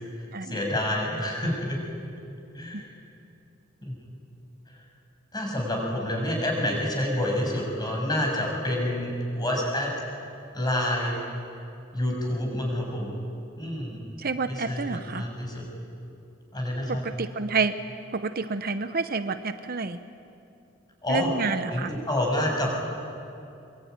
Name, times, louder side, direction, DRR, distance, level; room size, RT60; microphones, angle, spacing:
voice 1, 0.4-1.8 2.5-2.9 3.9-4.0 5.3-9.9 10.5-11.2 11.9-13.1 13.6-14.0 14.5-15.7 16.5-17.0 21.0-21.3 21.7-22.7, left 1 dB, 20° left, 0 dB, 6.9 m, -28 dB
voice 2, 14.2-15.2 16.9-17.7 18.1-20.0 21.1-21.9, right 4 dB, 50° right, 9 dB, 0.9 m, -29 dB
24.5 x 23.5 x 9.5 m, 2.6 s
head